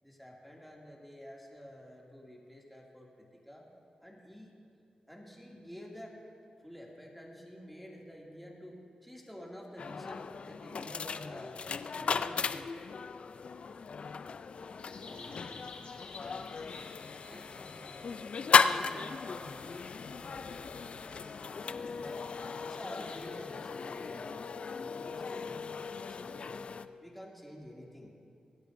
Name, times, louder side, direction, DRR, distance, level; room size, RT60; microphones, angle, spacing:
voice 1, 0.0-3.7 4.0-4.5 5.1-6.2 6.6-11.6 11.9-12.7 21.9-22.3 22.6-24.4 24.8-26.7 27.0-28.1, equal, 5° left, -2 dB, 2.4 m, -49 dB
sound 1, 9.8-26.9, left 5 dB, 60° left, 0.4 m, -35 dB
sound 2, 14.8-23.2, left 3 dB, 75° left, 1.8 m, -53 dB
voice 2, 15.0-15.7 16.2-18.3 18.8-21.1 25.4-25.5 27.6-27.7, equal, 15° right, -3 dB, 1.3 m, -55 dB
23.5 x 10.5 x 2.6 m, 2.5 s
cardioid pair, 65°, 2 cm